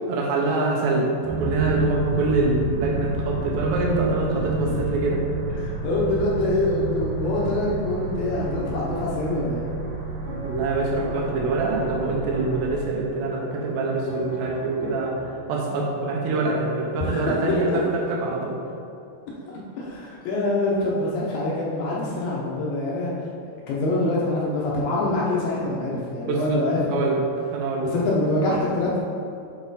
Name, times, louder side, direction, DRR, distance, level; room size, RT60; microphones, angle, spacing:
voice 1, 0.1-5.2 10.4-15.1 15.5-17.7 18.2-18.6 26.2-26.6 26.9-27.2 27.5-27.9, right 3 dB, 90° right, -2 dB, 3.3 m, -25 dB
sound 1, 1.2-12.7, right 3 dB, 75° right, 2.6 m, -29 dB
voice 2, 5.6-9.6 17.0-17.2 19.5-23.1 23.7-27.2 27.8-29.0, left 2 dB, 75° left, -5 dB, 2.3 m, -25 dB
sound 2, 7.6-15.3, right 1 dB, 45° right, 1.7 m, -40 dB
8.4 x 4.3 x 4.0 m, 2.6 s
omnidirectional pair, 4.8 m